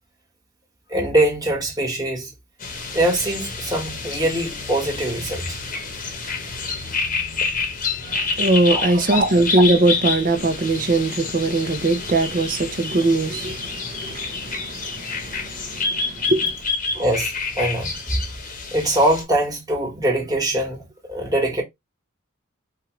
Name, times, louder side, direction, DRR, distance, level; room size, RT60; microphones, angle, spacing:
voice 1, 0.9-2.3 2.9-5.6 8.7-8.9 16.9-18.2 18.7-21.6, right 1 dB, 20° right, 1.4 m, -23 dB
sound 1, 2.6-19.2, left 4 dB, 40° left, 0.9 m, -28 dB
voice 2, 8.1-16.5, right 2 dB, 40° right, 0.7 m, -21 dB
4.5 x 2.4 x 3.1 m
head